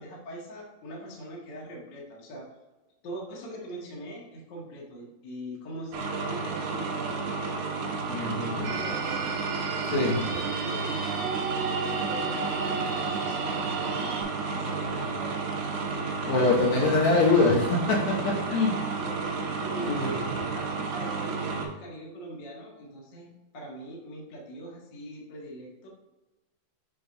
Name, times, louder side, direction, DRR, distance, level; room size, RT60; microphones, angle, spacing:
voice 1, 0.0-2.4 3.0-7.4 8.2-9.4 9.8-14.1 14.5-15.5 19.0-19.3 19.6-25.9, right 1 dB, 60° left, -3 dB, 1.1 m, -42 dB
sound 1, 5.9-21.7, right 4 dB, 90° right, 1.7 m, -32 dB
voice 2, 8.1-8.8 9.9-10.3 16.3-18.0 18.5-18.7 19.9-20.1, left 3 dB, 85° left, -3 dB, 3.6 m, -23 dB
sound 2, 8.6-14.2, right 5 dB, 70° right, 1.6 m, -33 dB
7.8 x 5.3 x 2.6 m, 1.1 s
omnidirectional pair, 4.8 m